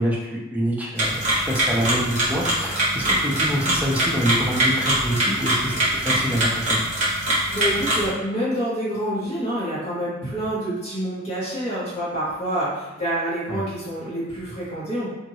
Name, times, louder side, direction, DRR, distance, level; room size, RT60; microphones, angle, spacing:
voice 1, 0.0-6.8 13.5-13.6, equal, 10° right, -4 dB, 0.5 m, -26 dB
sound 1, 1.0-8.1, right 1 dB, 40° right, 0.9 m, -23 dB
voice 2, 7.5-15.1, right 1 dB, 35° left, -10 dB, 1.2 m, -27 dB
2.9 x 2.6 x 2.7 m, 1.1 s
head